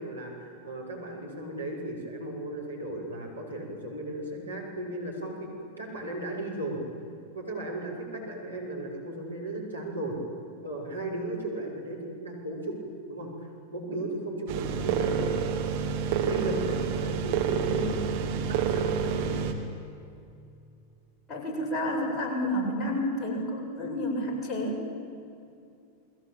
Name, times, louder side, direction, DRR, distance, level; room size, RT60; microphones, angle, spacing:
voice 1, 0.0-6.8 7.3-10.2 10.6-12.8 13.1-15.3 16.1-18.0 18.2-19.4, right 1 dB, 85° right, -1 dB, 6.9 m, -36 dB
sound 1, 14.5-19.5, right 6 dB, 50° right, 3.2 m, -28 dB
voice 2, 21.3-24.8, left 1 dB, 25° left, -1 dB, 7.9 m, -30 dB
29.5 x 22.5 x 9.0 m, 2.5 s
figure-of-eight pair, 90°, 0 cm